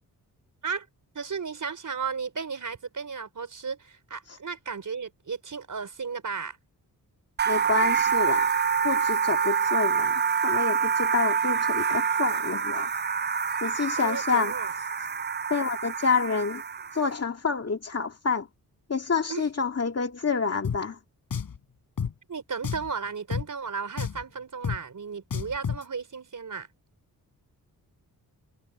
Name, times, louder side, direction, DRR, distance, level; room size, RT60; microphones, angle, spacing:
voice 1, 1.1-6.6 14.0-14.7 19.3-19.4 22.3-26.7, right 5 dB, 55° right, 4.9 m, -34 dB
sound 1, 7.4-17.1, right 7 dB, 30° right, 0.5 m, -26 dB
voice 2, 7.5-8.5 8.8-12.9 13.6-14.5 15.5-16.6 16.9-18.5 18.9-21.0, left 5 dB, 40° left, 2.3 m, -28 dB
Drum, 20.6-20.8 21.3-21.6 22.0-22.1 22.6-22.9 23.3-23.5 24.0-24.2 24.6-24.8 25.3-25.8, left 6 dB, 65° left, 4.2 m, -30 dB
cardioid pair, 75°, 37 cm